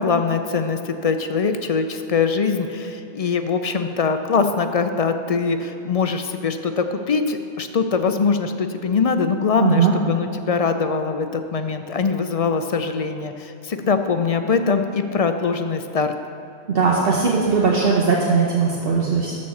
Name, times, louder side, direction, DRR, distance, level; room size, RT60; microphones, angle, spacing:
voice 1, 0.0-16.1, left 5 dB, 50° left, 7 dB, 0.4 m, -22 dB
voice 2, 9.6-9.9 16.7-19.3, right 5 dB, 65° right, -3 dB, 1.1 m, -19 dB
13.0 x 4.3 x 7.0 m, 2.6 s
omnidirectional pair, 1.1 m